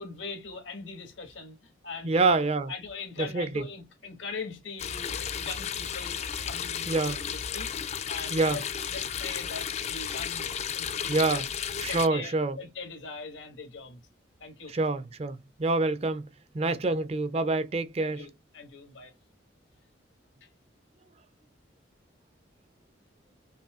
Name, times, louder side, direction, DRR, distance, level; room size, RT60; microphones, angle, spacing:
voice 1, 0.0-6.2 6.4-7.7 8.1-10.5 10.7-11.5 11.8-14.0 14.4-14.7 16.7-17.0 18.1-19.1, left 4 dB, 90° left, 1.4 m, -41 dB
voice 2, 2.0-2.7 3.2-3.7 6.9-7.2 8.3-8.6 11.1-11.5 11.8-12.6 14.7-16.3 16.5-18.2, right 3 dB, 35° right, 0.4 m, -26 dB
sound 1, 4.8-12.1, left 8 dB, 35° left, 0.3 m, -33 dB
5.4 x 2.7 x 2.3 m
head